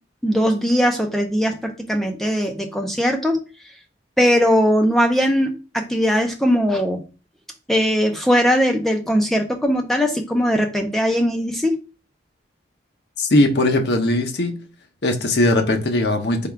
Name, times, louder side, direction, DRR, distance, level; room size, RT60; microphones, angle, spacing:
voice 1, 0.2-3.4 4.2-7.0 7.7-11.8, equal, ahead, 0.4 m, -19 dB
voice 2, 13.2-14.6 15.0-16.5, left 1 dB, 60° left, 0.6 m, -19 dB
3.5 x 2.3 x 4.5 m
head